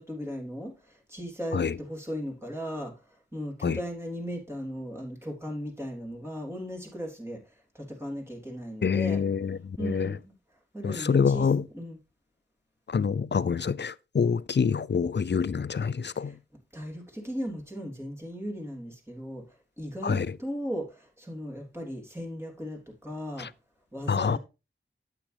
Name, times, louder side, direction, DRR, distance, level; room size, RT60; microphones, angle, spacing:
voice 1, 0.0-9.2 9.8-10.3 10.7-11.5 11.7-12.0 16.1-16.3 16.7-19.4 19.8-23.5 23.9-24.4, equal, 10° right, 3.3 m, -37 dB
voice 2, 8.8-10.2 10.8-11.6 12.9-16.4 20.0-20.3 23.4-23.5 24.1-24.4, left 6 dB, 55° left, 0.5 m, -26 dB
8.8 x 8.0 x 3.3 m
wide cardioid pair, 40°, 21 cm